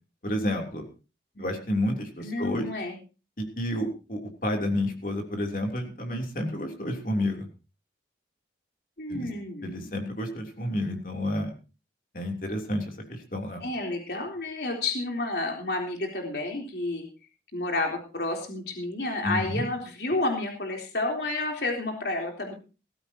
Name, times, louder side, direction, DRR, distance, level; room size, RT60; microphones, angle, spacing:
voice 1, 0.2-0.9 1.4-2.7 3.4-7.5 9.1-9.3 9.6-11.5 12.1-13.7 19.2-19.7, left 1 dB, 50° left, 3 dB, 3.3 m, -30 dB
voice 2, 2.2-3.0 9.0-9.9 13.6-17.1 17.5-22.5, left 2 dB, 65° left, 2 dB, 3.7 m, -30 dB
19.0 x 15.0 x 2.9 m, 0.33 s
head